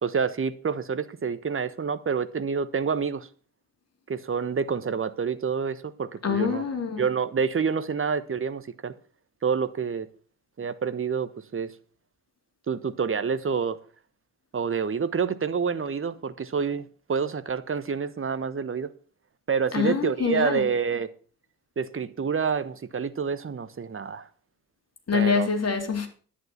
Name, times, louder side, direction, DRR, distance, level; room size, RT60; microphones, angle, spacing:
voice 1, 0.0-3.3 4.1-6.6 7.0-8.9 9.4-10.1 10.6-11.7 12.7-13.8 14.5-18.9 19.5-21.1 21.8-24.3 25.1-25.5, right 6 dB, 25° right, 1.3 m, -28 dB
voice 2, 6.2-7.0 19.7-20.6 25.1-26.1, left 5 dB, 35° left, 3.1 m, -25 dB
11.0 x 9.6 x 5.9 m
hypercardioid pair, 45°, 46 cm